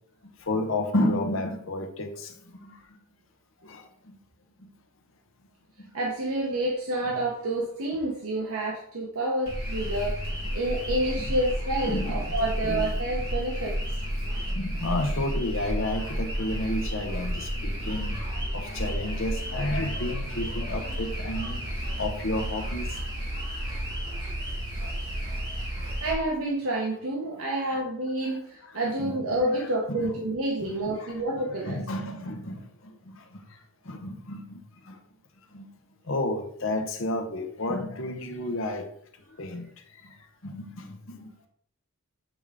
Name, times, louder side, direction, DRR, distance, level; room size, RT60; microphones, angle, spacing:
voice 1, 0.4-2.3 2.6-2.8 3.6-4.2 5.8-5.9 7.1-7.2 10.5-10.6 11.2-11.4 11.8-12.4 12.7-12.9 14.6-18.3 18.5-21.6 22.0-23.1 27.7-27.8 29.0-29.1 29.6-30.1 30.6-31.3 31.7-32.6 33.1-33.4 33.8-34.6 34.9-35.0 35.5-35.7 36.1-38.9 39.4-39.7 40.0-40.1 40.4-41.3, left 1 dB, 65° left, 5 dB, 0.9 m, -31 dB
voice 2, 5.9-13.8 14.2-14.4 26.0-31.8, right 1 dB, 90° right, -2 dB, 1.0 m, -29 dB
Notting Hill - Car being picked up on Portabello Road, 9.5-26.1, equal, 45° right, 2.2 m, -31 dB
8.0 x 3.6 x 3.6 m, 0.65 s
head